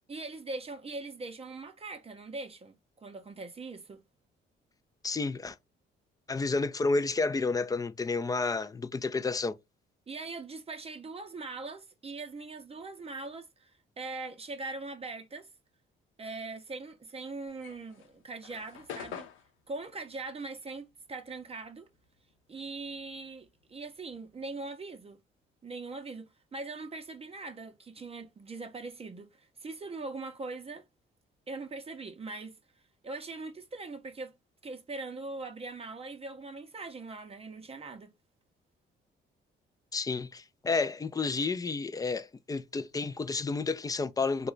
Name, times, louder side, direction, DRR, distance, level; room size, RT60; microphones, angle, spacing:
voice 1, 0.1-4.0 10.1-15.5 16.2-19.3 19.7-21.9 22.5-25.2 25.6-30.8 31.5-32.6 33.0-34.3 34.6-38.1, right 3 dB, 30° right, 0.6 m, -41 dB
voice 2, 5.0-5.6 6.3-9.6 39.9-44.5, left 3 dB, 20° left, 0.3 m, -31 dB
sound 1, 17.5-22.2 22.5-24.5, left 8 dB, 85° left, 0.6 m, -47 dB
2.9 x 2.2 x 3.7 m
cardioid pair, 90°, 20 cm